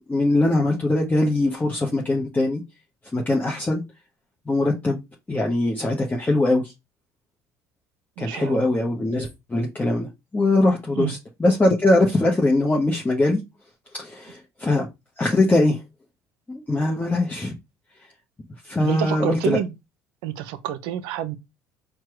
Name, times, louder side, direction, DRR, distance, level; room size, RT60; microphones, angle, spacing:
voice 1, 0.1-2.6 3.1-3.8 4.5-5.0 5.3-6.6 8.2-10.1 10.3-13.4 13.9-14.9 15.2-15.8 16.5-17.5 18.6-19.6, left 2 dB, 20° left, 1.0 m, -21 dB
voice 2, 8.2-8.7 11.0-11.1 18.8-19.7 20.2-21.4, right 11 dB, 70° right, 0.6 m, -28 dB
4.5 x 2.3 x 4.5 m
hypercardioid pair, 65°, 9 cm